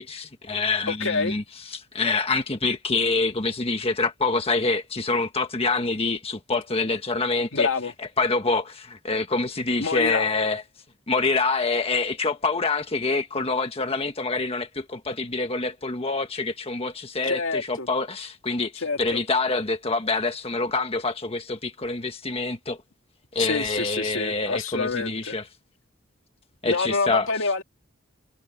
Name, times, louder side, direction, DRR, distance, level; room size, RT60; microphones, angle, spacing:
voice 1, 0.0-1.4 1.7-7.7 8.2-10.6 11.1-22.8 23.3-25.4 26.6-27.3, left 3 dB, 30° left, 1.4 m, -26 dB
voice 2, 0.9-1.4 7.5-7.9 9.8-10.3 17.3-17.9 18.8-19.2 23.4-25.4 26.7-27.6, left 4 dB, 70° left, 2.5 m, -27 dB
head